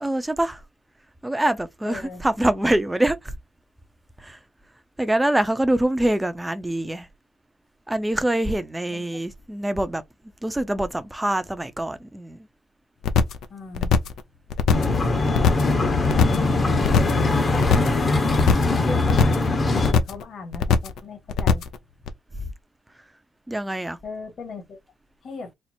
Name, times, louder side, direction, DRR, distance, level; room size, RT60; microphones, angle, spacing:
voice 1, 0.0-0.6 1.2-3.3 4.2-4.4 5.0-7.1 7.9-10.0 10.4-12.5 15.9-16.9 18.5-18.6 23.5-24.0, right 1 dB, 10° right, 0.6 m, -25 dB
voice 2, 1.9-2.2 8.9-9.1 13.5-13.9 18.8-21.6 24.0-24.8 25.2-25.5, left 4 dB, 55° left, 1.7 m, -37 dB
sound 1, 13.0-13.4 13.7-14.2 14.5-15.0 15.3-15.7 16.0-16.5 16.8-17.2 17.5-18.0 18.3-18.8 19.1-19.5 19.8-20.2 20.5-21.0 21.3-21.8 22.1-22.2, left 6 dB, 75° left, 0.6 m, -20 dB
sound 2, 14.7-19.9, left 3 dB, 35° left, 1.0 m, -21 dB
4.3 x 2.0 x 4.2 m
cardioid pair, 100°, 0 cm